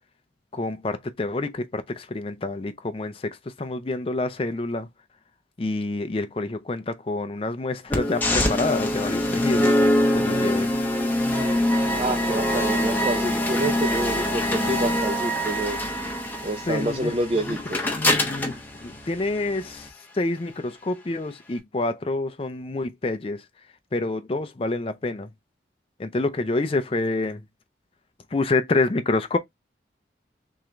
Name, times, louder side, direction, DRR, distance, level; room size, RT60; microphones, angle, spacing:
voice 1, 0.5-4.9 5.6-9.8 10.1-10.7 16.7-17.6 17.9-18.5 18.8-23.4 23.9-25.3 26.0-27.4 28.3-29.4, left 2 dB, 30° left, 0.5 m, -27 dB
sound 1, 7.9-19.9, left 1 dB, 10° left, 0.9 m, -24 dB
voice 2, 12.0-15.8 16.4-17.8, right 1 dB, 30° right, 0.5 m, -28 dB
3.6 x 2.9 x 3.2 m
head